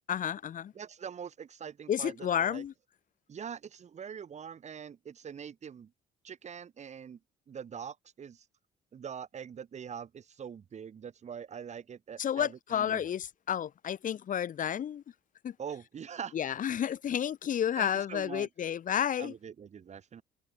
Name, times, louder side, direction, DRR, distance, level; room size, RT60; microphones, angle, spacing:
voice 1, 0.1-0.7 1.9-2.7 12.2-15.0 15.4-15.5 16.3-19.3, left 9 dB, 50° left, 6.7 m, -31 dB
voice 2, 0.7-2.6 3.3-5.9 6.2-7.2 7.5-8.4 8.9-13.1 15.6-16.4 17.8-18.5 19.2-20.2, right 7 dB, 40° right, 6.0 m, -43 dB
cardioid pair, 110°, 17 cm